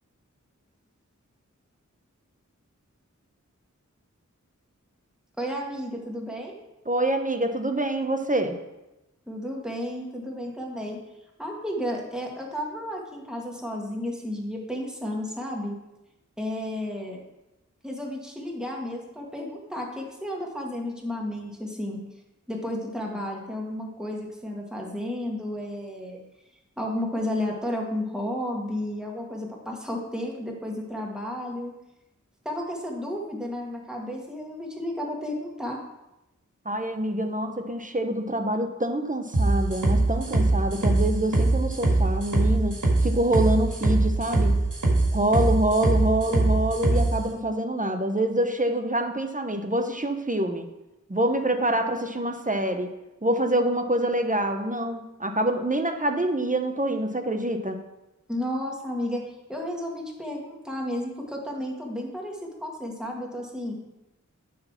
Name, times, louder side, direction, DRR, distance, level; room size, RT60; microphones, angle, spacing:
voice 1, 5.4-6.5 9.3-11.0 11.4-15.7 16.4-17.2 17.8-22.0 22.5-26.2 26.8-31.7 32.5-35.8 58.3-63.8, left 1 dB, ahead, -1 dB, 2.0 m, -32 dB
voice 2, 6.9-8.6 36.6-44.5 45.1-50.7 51.1-52.9 53.2-57.8, right 1 dB, 25° right, 5 dB, 0.9 m, -26 dB
sound 1, 39.3-47.1, right 2 dB, 80° right, 2.0 m, -22 dB
9.4 x 4.1 x 5.9 m, 0.97 s
wide cardioid pair, 45°, 31 cm